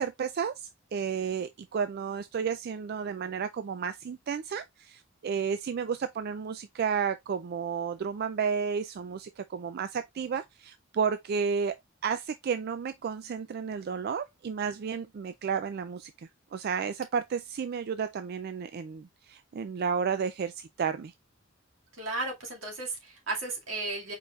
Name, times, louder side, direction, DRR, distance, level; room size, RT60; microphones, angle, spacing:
voice 1, 0.0-11.7 12.0-21.1, right 6 dB, 50° right, 0.3 m, -32 dB
voice 2, 22.0-24.1, right 2 dB, 85° right, 2.3 m, -34 dB
4.8 x 4.4 x 2.4 m
head